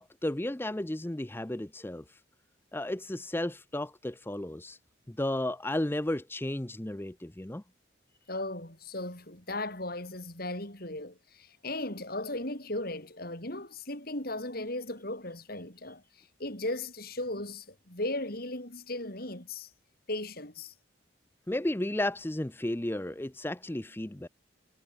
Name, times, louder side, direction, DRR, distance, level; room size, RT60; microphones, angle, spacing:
voice 1, 0.0-2.2 2.7-4.8 5.1-7.6 21.5-24.3, left 1 dB, 10° left, 0.6 m, -33 dB
voice 2, 8.3-19.7 20.1-20.7, left 2 dB, 50° left, 6.0 m, -37 dB
head